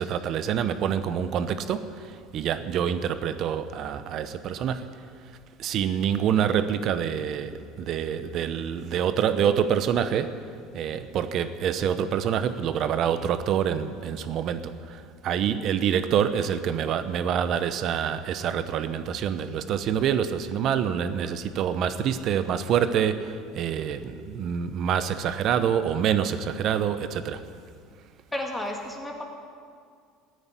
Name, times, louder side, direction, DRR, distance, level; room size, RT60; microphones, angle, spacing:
voice 1, 0.0-5.1 5.6-10.5 10.7-27.4, right 8 dB, 45° right, 11 dB, 0.8 m, -26 dB
voice 2, 28.3-29.2, left 1 dB, 10° left, 2 dB, 1.9 m, -32 dB
15.0 x 9.6 x 9.8 m, 2.2 s
cardioid pair, 140°, 0 cm